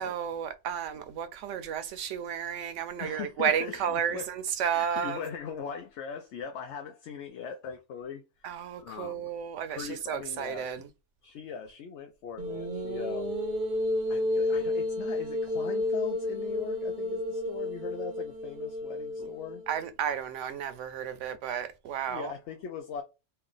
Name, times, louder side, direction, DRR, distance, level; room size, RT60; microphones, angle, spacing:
voice 1, 0.0-5.2 8.4-10.9 19.7-22.3, right 8 dB, 80° right, 1.0 m, -32 dB
voice 2, 3.0-4.3 4.7-8.5 8.8-9.3 9.7-10.7 11.2-13.4 14.1-19.6 22.1-23.0, left 7 dB, 70° left, 0.9 m, -40 dB
sound 1, 12.4-19.8, left 1 dB, 55° right, 0.7 m, -31 dB
3.3 x 2.3 x 3.7 m
omnidirectional pair, 1.2 m